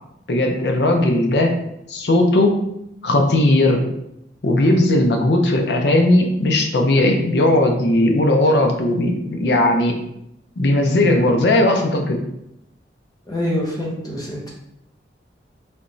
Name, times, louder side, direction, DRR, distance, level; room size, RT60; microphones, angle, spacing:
voice 1, 0.3-1.6 1.9-2.6 3.0-3.8 4.4-10.0 10.6-12.2, left 1 dB, 70° left, 3 dB, 0.5 m, -17 dB
voice 2, 13.3-14.5, left 1 dB, 20° left, -3 dB, 0.6 m, -25 dB
3.3 x 3.0 x 2.6 m, 0.81 s
head